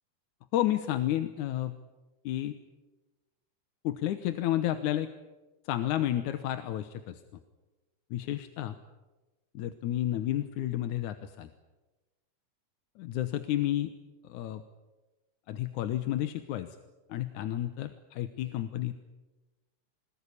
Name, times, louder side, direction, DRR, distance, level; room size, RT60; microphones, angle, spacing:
voice 1, 0.5-1.7 2.2-2.6 3.8-5.1 5.7-7.2 8.1-8.8 9.5-11.5 13.0-13.9 14.3-14.6 15.5-16.8 17.1-19.0, left 13 dB, 80° left, 10 dB, 2.4 m, -31 dB
25.5 x 20.5 x 9.9 m, 1.1 s
omnidirectional pair, 3.5 m